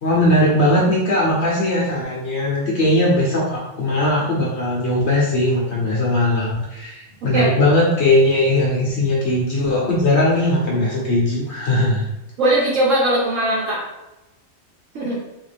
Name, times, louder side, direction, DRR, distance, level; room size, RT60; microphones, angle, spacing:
voice 1, 0.0-12.0, left 1 dB, 55° left, -4 dB, 0.9 m, -19 dB
voice 2, 7.3-7.6 12.4-13.8 14.9-15.1, right 1 dB, 65° right, -4 dB, 1.1 m, -19 dB
3.5 x 2.5 x 3.3 m, 1.0 s
omnidirectional pair, 1.5 m